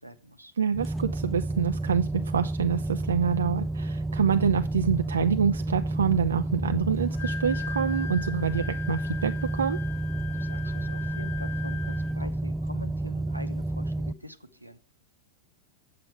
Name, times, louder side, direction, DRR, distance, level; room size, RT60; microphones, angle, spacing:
voice 1, 0.0-0.5 10.3-14.8, equal, 85° right, 9 dB, 0.8 m, -45 dB
voice 2, 0.6-9.8, right 7 dB, 70° right, 8 dB, 0.4 m, -26 dB
space drone fragment, 0.7-14.1, right 2 dB, 5° right, 0.4 m, -30 dB
Wind instrument woodwind instrument, 7.0-12.3, left 8 dB, 50° left, 0.7 m, -40 dB
7.6 x 7.5 x 4.7 m, 0.37 s
figure-of-eight pair, 90°, 0 cm